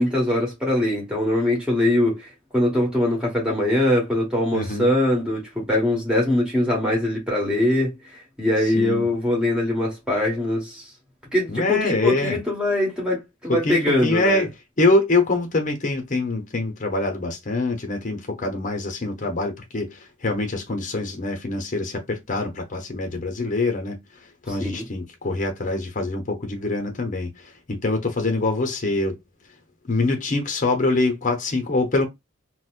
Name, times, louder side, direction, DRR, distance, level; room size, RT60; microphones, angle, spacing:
voice 1, 0.0-2.3 2.5-7.9 8.4-10.8 11.3-14.4 24.5-24.8, left 1 dB, 5° right, 1.4 m, -22 dB
voice 2, 4.5-4.9 8.6-9.1 11.5-12.4 13.5-14.5 14.8-29.2 29.9-32.1, left 2 dB, 40° left, 0.7 m, -24 dB
4.0 x 2.1 x 2.4 m
head